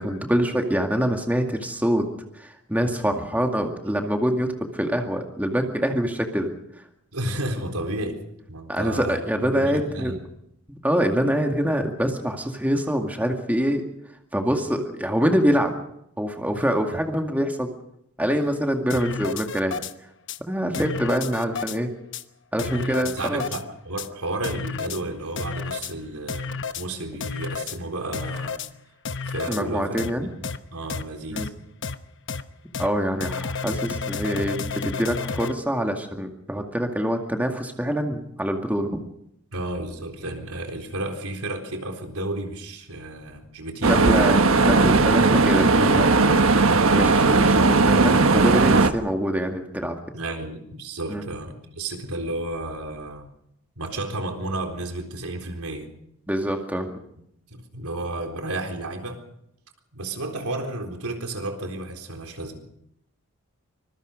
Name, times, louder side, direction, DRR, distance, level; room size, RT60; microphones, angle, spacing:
voice 1, 0.0-2.1 2.3-6.5 8.7-10.1 10.7-13.8 14.3-15.7 16.2-17.7 18.2-19.8 20.5-21.9 22.5-23.4 29.5-30.3 31.3-31.5 32.8-39.0 43.8-46.4 46.9-50.0 51.1-51.2 56.3-56.9, equal, 5° right, 3 dB, 2.1 m, -25 dB
voice 2, 7.1-8.2 8.5-10.2 16.5-16.6 22.7-28.6 29.2-30.3 30.7-31.5 39.5-44.3 50.1-53.3 53.8-55.9 57.5-59.2 59.9-62.6, right 2 dB, 85° right, 4 dB, 4.0 m, -32 dB
sound 1, 18.9-19.9 20.3-20.4 20.7-21.8 22.1-22.2 22.6-23.6 24.0-24.1 24.4-25.0 25.4-25.9 26.3-26.8 27.2-27.8 28.1-28.7 29.0-29.6 30.0-30.1 30.4-30.6 30.9-31.0 31.4-31.5 31.8-31.9 32.3-32.4 32.7-32.9 33.2-35.5, left 5 dB, 55° left, 1.1 m, -31 dB
sound 2, 43.8-48.9, right 3 dB, 70° right, 1.4 m, -17 dB
25.0 x 22.0 x 5.2 m, 0.74 s
head